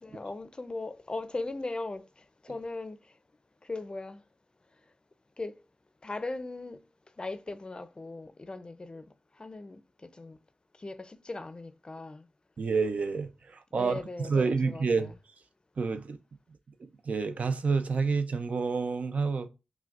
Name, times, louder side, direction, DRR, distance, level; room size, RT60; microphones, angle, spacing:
voice 1, 0.0-3.2 3.6-4.2 5.4-5.6 6.0-6.8 7.2-9.1 9.3-10.4 10.8-12.3 13.7-15.1, left 2 dB, 35° left, 0.4 m, -39 dB
voice 2, 12.6-15.1 15.8-16.2 16.8-19.5, right 4 dB, 60° right, 0.4 m, -29 dB
5.7 x 2.2 x 2.4 m
cardioid pair, 40°, 3 cm